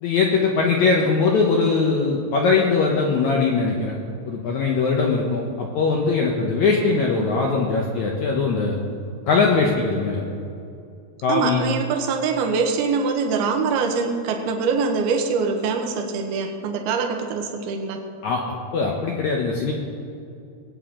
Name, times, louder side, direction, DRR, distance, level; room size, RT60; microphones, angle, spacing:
voice 1, 0.0-3.9 4.3-8.8 9.3-10.2 11.2-11.6 18.2-18.4 18.7-19.7, left 4 dB, 80° left, -1 dB, 1.7 m, -21 dB
voice 2, 11.3-18.0, right 5 dB, 75° right, 4 dB, 2.9 m, -24 dB
19.5 x 9.0 x 3.8 m, 2.5 s
omnidirectional pair, 4.7 m